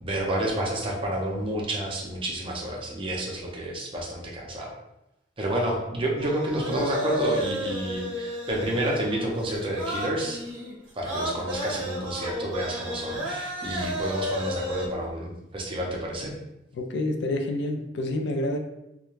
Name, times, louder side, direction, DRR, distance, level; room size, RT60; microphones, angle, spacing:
voice 1, 0.0-4.7 5.4-10.4 10.9-16.4, right 1 dB, 30° right, -2 dB, 0.5 m, -29 dB
sound 1, 6.2-14.9, equal, 80° right, 0.6 m, -32 dB
voice 2, 16.7-18.6, left 1 dB, 65° left, 4 dB, 0.3 m, -28 dB
2.3 x 2.1 x 3.0 m, 0.88 s
head